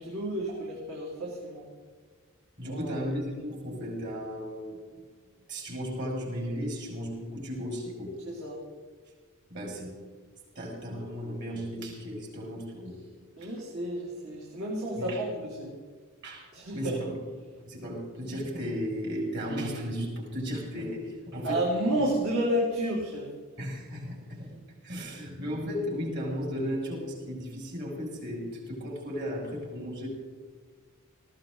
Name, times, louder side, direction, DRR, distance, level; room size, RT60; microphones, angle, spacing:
voice 1, 0.0-1.7 2.6-3.0 8.3-8.6 13.4-15.8 16.5-17.0 21.4-23.3, right 1 dB, 70° right, -5 dB, 3.4 m, -31 dB
voice 2, 2.6-4.8 5.5-8.2 9.5-10.0 10.5-13.0 13.4-13.5 15.0-15.2 16.2-16.5 16.7-17.2 17.7-21.6 22.0-22.1 23.6-24.6 24.8-30.1, equal, 50° right, -2 dB, 6.3 m, -35 dB
19.0 x 16.5 x 4.0 m, 1.5 s
head